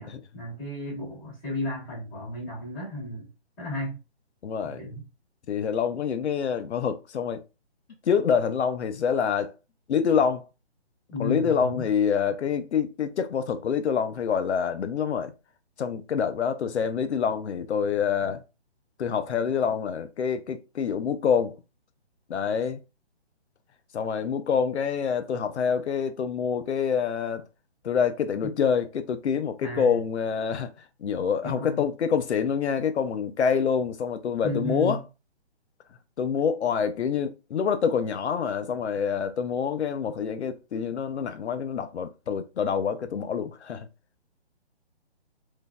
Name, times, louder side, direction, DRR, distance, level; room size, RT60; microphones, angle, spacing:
voice 1, 0.0-3.3 3.6-4.0 4.6-5.0 11.1-11.9 29.6-30.0 31.4-31.9 34.4-35.0, left 1 dB, 10° left, 1.5 m, -33 dB
voice 2, 4.4-4.8 5.5-7.4 8.0-9.5 9.9-10.4 11.2-15.3 15.8-18.4 19.0-21.6 22.3-22.8 23.9-27.5 27.8-35.0 36.2-43.9, left 7 dB, 85° left, 0.5 m, -26 dB
3.7 x 2.6 x 2.2 m
hypercardioid pair, 170°, 33 cm